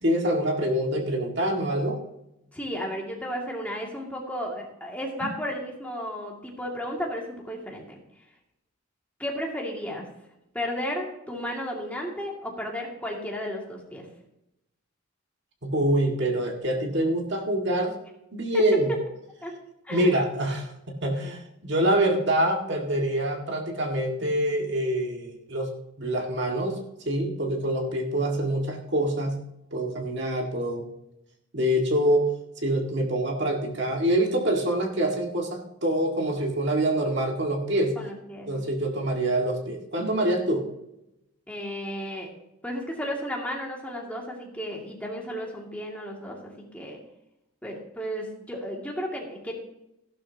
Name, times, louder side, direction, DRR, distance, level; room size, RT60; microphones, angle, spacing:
voice 1, 0.0-2.0 5.2-5.3 15.6-18.0 18.3-18.9 19.9-25.7 26.0-29.4 29.7-30.9 31.5-32.3 32.6-38.0 38.5-40.7, right 1 dB, 55° right, 1 dB, 2.0 m, -25 dB
voice 2, 2.5-8.0 9.2-10.1 10.5-14.0 18.5-18.6 19.4-19.5 19.8-20.1 38.0-38.7 41.5-42.3 42.6-47.0 47.6-49.5, equal, 5° left, -2 dB, 2.3 m, -33 dB
15.5 x 12.0 x 2.9 m, 0.85 s
head